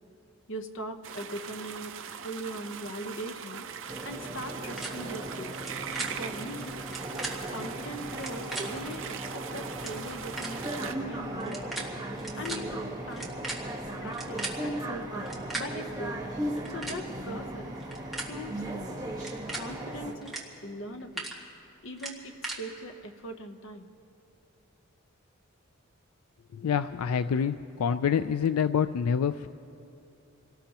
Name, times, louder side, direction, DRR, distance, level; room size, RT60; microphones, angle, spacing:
voice 1, 0.5-3.7 4.0-5.5 6.2-6.8 7.5-11.6 12.4-13.4 14.0-15.3 15.5-16.2 16.7-17.8 18.2-19.1 19.5-20.3 20.6-21.3 21.8-23.9, equal, 60° left, 5 dB, 1.0 m, -40 dB
sound 1, 1.0-10.9, right 7 dB, 60° right, 0.6 m, -41 dB
sound 2, 3.9-20.1, right 1 dB, 15° right, 1.3 m, -37 dB
sound 3, 4.8-4.9 5.5-5.7 5.9-6.1 6.8-7.3 8.1-8.6 9.4-9.5 9.7-9.9 10.4-10.5 11.4-11.8 12.1-12.6 13.1-14.5 15.2-15.6 16.5-17.0 17.8-18.3 19.1-19.6 20.2-20.4 20.8-21.3 22.0-22.6, right 2 dB, ahead, 1.7 m, -36 dB
voice 2, 26.6-29.5, left 7 dB, 90° left, 12 dB, 0.4 m, -27 dB
27.0 x 18.5 x 2.9 m, 2.7 s
head